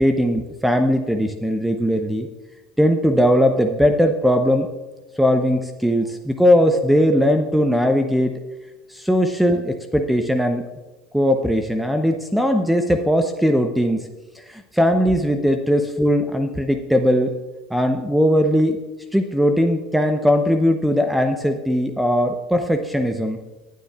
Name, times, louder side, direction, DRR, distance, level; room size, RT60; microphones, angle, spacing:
voice 1, 0.0-2.3 2.8-4.7 5.2-8.4 8.9-10.6 11.1-14.1 14.5-17.3 17.7-18.8 19.1-23.4, equal, 5° right, 6 dB, 0.8 m, -19 dB
19.0 x 9.1 x 2.4 m, 1.2 s
figure-of-eight pair, 70°, 2 cm